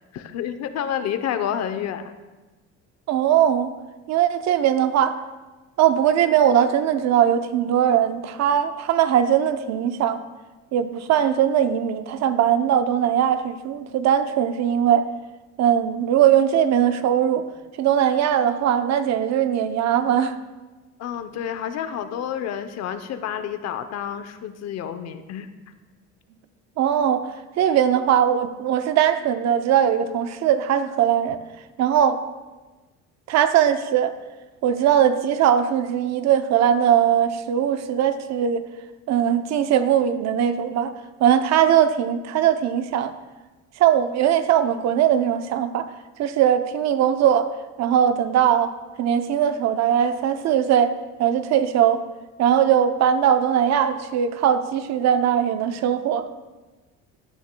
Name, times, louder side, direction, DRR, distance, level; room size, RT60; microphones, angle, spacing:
voice 1, 0.1-2.1 21.0-25.5, left 9 dB, 60° left, 10 dB, 0.7 m, -29 dB
voice 2, 3.1-3.7 4.1-5.2 5.8-10.2 10.7-15.0 15.6-17.5 17.8-20.3 26.8-27.3 27.6-31.4 31.8-32.2 33.3-34.1 34.6-38.6 39.1-40.9 41.2-43.1 43.8-45.9 46.2-47.5 47.8-48.7 49.0-50.9 51.2-52.0 52.4-56.2, right 9 dB, 60° right, 10 dB, 0.6 m, -20 dB
14.5 x 9.2 x 2.2 m, 1.2 s
cardioid pair, 135°, 30 cm